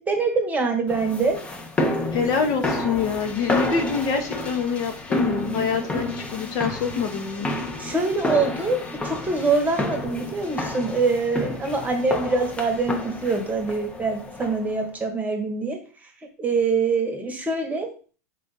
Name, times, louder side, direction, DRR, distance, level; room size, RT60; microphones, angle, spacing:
voice 1, 0.0-1.4 7.8-8.8 9.0-15.8 16.4-17.9, right 4 dB, 15° right, 4 dB, 1.1 m, -24 dB
sound 1, 0.9-14.8, left 1 dB, 10° left, 0.7 m, -30 dB
voice 2, 2.1-7.5, left 6 dB, 45° left, 4 dB, 0.8 m, -25 dB
4.5 x 2.5 x 4.0 m, 0.39 s
hypercardioid pair, 105°, 9 cm